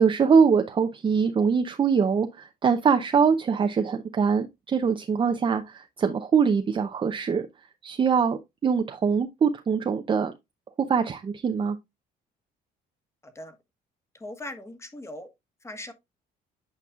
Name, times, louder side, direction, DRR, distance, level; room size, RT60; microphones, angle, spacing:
voice 1, 0.0-7.4 7.8-10.3 10.9-11.8, right 6 dB, 30° right, 0.6 m, -23 dB
voice 2, 13.2-13.6 14.1-15.3 15.6-15.9, left 1 dB, 15° left, 1.3 m, -39 dB
8.5 x 5.3 x 2.4 m
cardioid pair, 110°, 17 cm